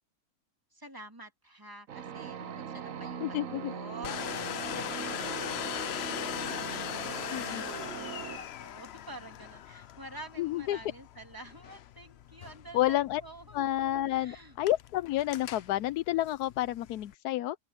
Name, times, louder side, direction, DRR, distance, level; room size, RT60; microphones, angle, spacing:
voice 1, 0.7-4.4 4.7-13.6 14.1-14.5, right 2 dB, 15° right, 3.1 m, -49 dB
sound 1, 1.9-8.4, right 8 dB, 60° right, 1.3 m, -41 dB
voice 2, 3.2-3.7 7.3-7.6 10.4-10.8 12.7-13.2 13.5-17.6, left 14 dB, 85° left, 1.1 m, -30 dB
Domestic sounds home sounds, 4.0-17.1, left 11 dB, 60° left, 0.7 m, -40 dB
open air
omnidirectional pair, 1.6 m